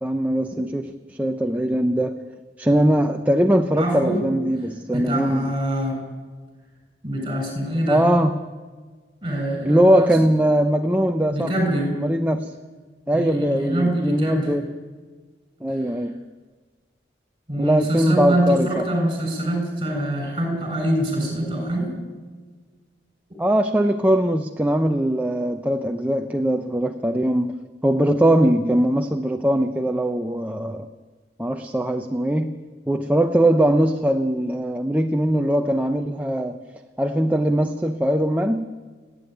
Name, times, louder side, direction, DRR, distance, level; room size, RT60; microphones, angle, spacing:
voice 1, 0.0-2.2 2.6-5.6 7.9-8.4 9.6-11.5 11.9-12.5 13.1-14.7 15.6-16.2 17.6-18.8 23.4-27.6 27.8-30.9 31.4-32.6 32.9-36.6 37.0-38.7, right 1 dB, 10° right, 5 dB, 0.7 m, -21 dB
voice 2, 3.8-4.2 4.9-6.0 7.0-8.0 9.2-10.1 11.3-11.9 13.1-14.5 17.5-21.9, right 1 dB, 25° right, 2 dB, 7.3 m, -24 dB
30.0 x 11.0 x 9.4 m, 1.4 s
head